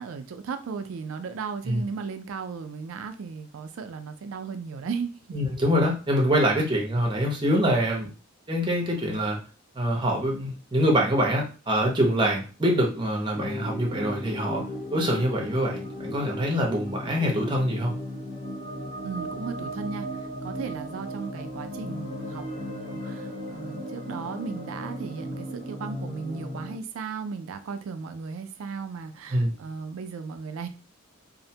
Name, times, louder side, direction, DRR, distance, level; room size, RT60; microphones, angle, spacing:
voice 1, 0.0-5.1 19.0-30.7, right 5 dB, 80° right, 9 dB, 0.4 m, -36 dB
voice 2, 5.3-8.1 8.5-9.4 9.7-14.6 14.9-17.9 29.3-29.6, equal, 25° right, -1 dB, 0.6 m, -25 dB
sound 1, 13.3-26.8, equal, 35° left, 0.9 m, -36 dB
2.5 x 2.1 x 2.7 m, 0.34 s
head